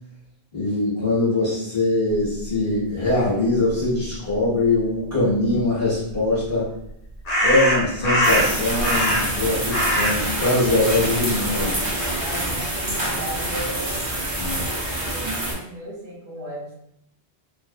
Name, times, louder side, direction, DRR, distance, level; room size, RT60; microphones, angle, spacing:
voice 1, 0.5-6.7 7.4-11.9 14.3-14.7, left 2 dB, 20° left, -9 dB, 0.8 m, -22 dB
sound 1, 6.1-6.2 7.3-9.4 9.7-11.8, equal, 80° left, 0.9 m, -22 dB
sound 2, 8.2-15.5, right 1 dB, 35° right, 0.4 m, -26 dB
voice 2, 12.2-14.1 15.0-16.7, right 1 dB, 55° right, -6 dB, 0.8 m, -35 dB
2.5 x 2.1 x 2.4 m, 0.77 s
omnidirectional pair, 1.1 m